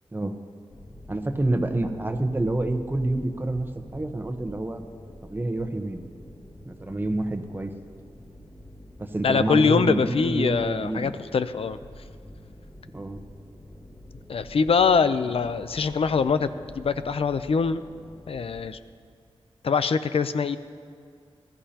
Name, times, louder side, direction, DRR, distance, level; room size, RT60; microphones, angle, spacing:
sound 1, 0.7-18.7, left 1 dB, 20° left, 1.1 m, -47 dB
voice 1, 1.1-3.7 3.9-4.8 5.3-6.0 6.6-7.7 9.0-11.1 12.9-13.2, right 2 dB, 20° right, 5 dB, 1.0 m, -27 dB
voice 2, 9.2-11.8 14.3-16.5 16.8-17.8 18.3-18.8 19.6-20.6, left 5 dB, 65° left, 12 dB, 0.5 m, -23 dB
20.5 x 13.5 x 2.9 m, 2.3 s
wide cardioid pair, 90°, 11 cm